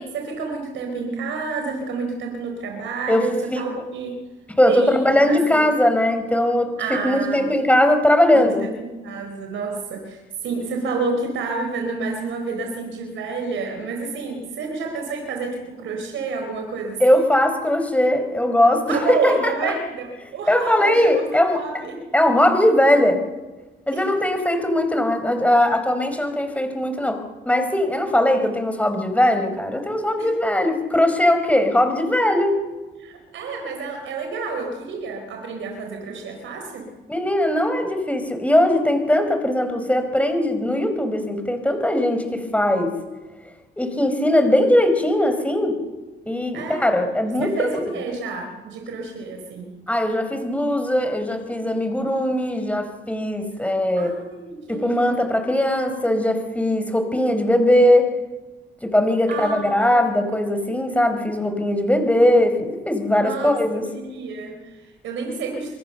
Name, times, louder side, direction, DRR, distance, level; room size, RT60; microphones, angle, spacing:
voice 1, 0.0-4.2 4.7-5.7 6.8-7.5 8.3-17.2 18.9-22.0 23.9-24.1 24.3-24.4 30.2-30.3 33.0-36.9 46.5-46.9 47.3-49.7 53.6-53.7 54.0-55.3 59.3-60.1 63.2-65.8, right 4 dB, 75° right, 3 dB, 4.4 m, -29 dB
voice 2, 4.6-6.7 7.0-8.7 17.0-19.5 20.5-21.6 22.1-23.2 23.9-32.6 37.1-42.9 43.8-45.7 46.3-47.9 49.9-54.1 54.7-58.1 58.8-63.8, left 1 dB, 5° left, 6 dB, 4.8 m, -20 dB
25.5 x 23.0 x 6.9 m, 1.2 s
cardioid pair, 90°, 20 cm